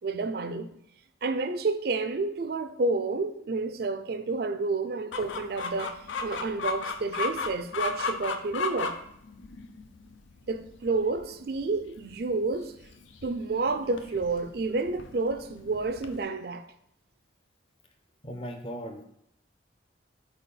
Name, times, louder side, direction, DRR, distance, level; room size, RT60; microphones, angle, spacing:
voice 1, 0.0-0.7 1.2-9.0 10.5-12.7 13.2-16.7, right 3 dB, 55° right, 0.4 m, -30 dB
Chicken rooster, 5.1-16.2, left 4 dB, 85° left, 0.5 m, -36 dB
voice 2, 18.2-19.0, equal, 30° left, 0.6 m, -37 dB
4.4 x 4.2 x 5.3 m
head